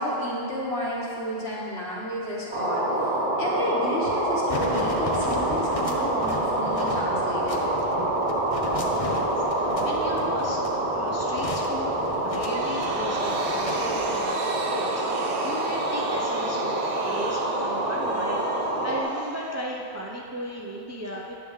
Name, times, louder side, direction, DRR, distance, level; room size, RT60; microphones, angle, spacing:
voice 1, 0.0-7.7, equal, 75° left, -5 dB, 1.7 m, -31 dB
sound 1, 2.5-19.0, right 1 dB, 50° right, 1.3 m, -26 dB
sound 2, 4.5-14.2, left 3 dB, 40° left, 0.6 m, -37 dB
voice 2, 8.9-10.6 10.9-12.0 12.2-21.3, equal, 20° right, -2 dB, 0.4 m, -36 dB
sound 3, 12.1-20.0, right 4 dB, 90° right, 0.9 m, -39 dB
9.7 x 7.0 x 3.2 m, 2.5 s
omnidirectional pair, 1.1 m